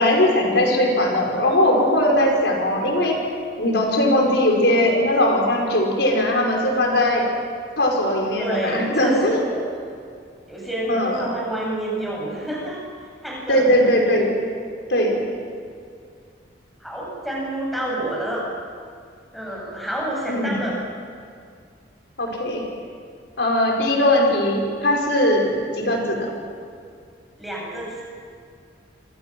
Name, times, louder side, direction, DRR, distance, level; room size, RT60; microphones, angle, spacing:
voice 1, 0.0-3.2 3.6-7.3 7.8-9.4 10.9-11.3 13.5-14.3 14.9-15.2 20.3-20.6 22.2-22.6 23.4-26.3, left 1 dB, 70° left, 0 dB, 5.3 m, -19 dB
voice 2, 8.4-9.7 10.5-12.8 13.2-13.8 14.2-14.3 16.8-18.4 19.3-20.8 27.4-28.0, right 1 dB, ahead, -4 dB, 7.7 m, -28 dB
27.5 x 27.0 x 6.2 m, 2.3 s
head